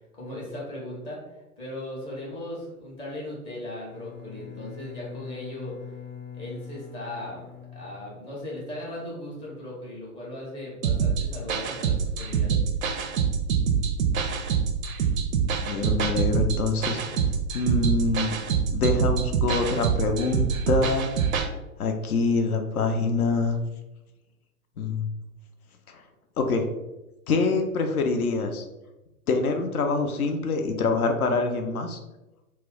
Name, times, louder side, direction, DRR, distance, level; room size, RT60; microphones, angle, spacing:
voice 1, 0.1-1.2 1.6-5.8 6.3-7.5 7.7-12.6, left 1 dB, 10° left, -6 dB, 0.5 m, -37 dB
Bowed string instrument, 3.9-8.6, left 7 dB, 40° left, 0.8 m, -43 dB
sound 1, 10.8-21.5, right 6 dB, 65° right, 0.5 m, -25 dB
voice 2, 15.6-17.0 17.5-18.3 18.7-21.1 21.8-23.6 24.8-25.1 26.4-26.6 27.3-28.7 29.3-32.0, left 4 dB, 75° left, 5 dB, 0.6 m, -25 dB
2.3 x 2.1 x 3.6 m, 1.0 s
figure-of-eight pair, 105°, 44 cm